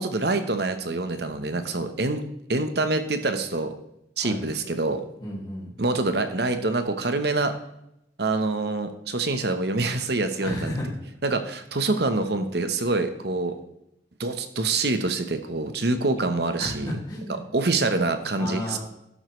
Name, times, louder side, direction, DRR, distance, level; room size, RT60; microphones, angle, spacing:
voice 1, 0.0-2.2 2.5-3.7 4.2-5.0 5.8-7.5 8.2-10.7 11.2-13.5 14.2-16.9 17.5-18.8, right 3 dB, 55° right, 8 dB, 1.0 m, -25 dB
voice 2, 5.2-5.7 10.4-10.9 16.6-17.4 18.4-18.8, left 1 dB, 20° left, -7 dB, 2.5 m, -33 dB
12.0 x 7.7 x 3.2 m, 0.82 s
head